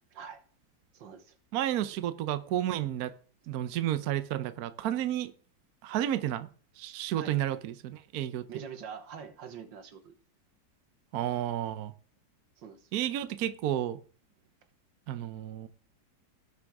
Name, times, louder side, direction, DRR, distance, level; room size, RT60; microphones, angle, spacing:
voice 1, 0.9-1.4 7.2-7.4 8.5-10.2 12.6-12.9, right 7 dB, 90° right, 1.9 m, -44 dB
voice 2, 1.5-3.1 3.5-5.3 5.8-6.5 6.8-8.5 11.1-11.9 12.9-14.0 15.1-15.7, right 12 dB, 65° right, 1.1 m, -31 dB
17.5 x 6.2 x 3.6 m
omnidirectional pair, 2.0 m